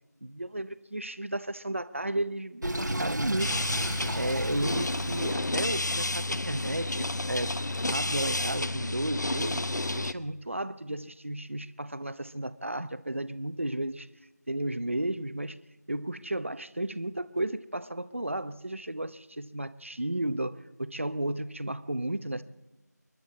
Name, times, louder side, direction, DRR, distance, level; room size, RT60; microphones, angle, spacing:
voice 1, 0.2-3.8 4.1-7.6 7.8-9.7 10.0-14.1 14.5-15.6 15.9-22.4, right 1 dB, 45° right, 13 dB, 0.8 m, -33 dB
Sink (filling or washing), 2.6-5.4, right 1 dB, 85° right, 1.4 m, -33 dB
sound 1, 3.4-10.1, left 2 dB, 80° left, 0.8 m, -31 dB
29.5 x 11.0 x 4.1 m, 1.1 s
figure-of-eight pair, 175°, 10 cm